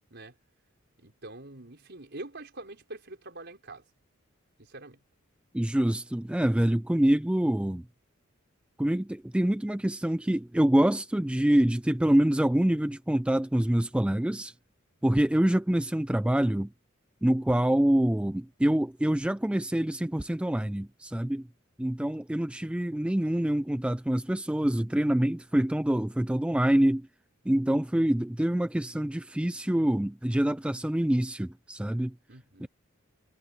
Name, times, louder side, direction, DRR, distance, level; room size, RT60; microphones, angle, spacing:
voice 1, 1.0-3.8 4.6-5.0 32.3-32.7, right 2 dB, 55° right, 5.3 m, -44 dB
voice 2, 5.5-7.8 8.8-14.5 15.0-16.7 17.2-21.5 21.8-27.1 27.5-32.1 32.6-32.7, right 1 dB, 5° right, 0.3 m, -26 dB
head